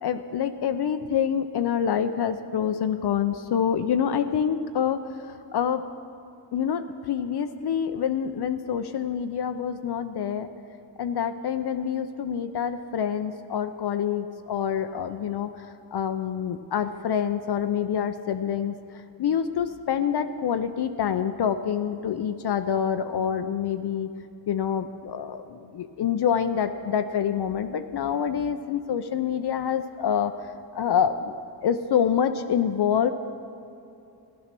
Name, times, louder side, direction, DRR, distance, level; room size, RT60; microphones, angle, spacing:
voice 1, 0.0-5.8 6.5-10.5 11.0-18.7 19.2-24.1 24.5-30.5 30.7-31.3 31.6-33.1, left 8 dB, 65° left, 9 dB, 0.7 m, -26 dB
14.0 x 11.0 x 6.0 m, 2.7 s
cardioid pair, 85°, 44 cm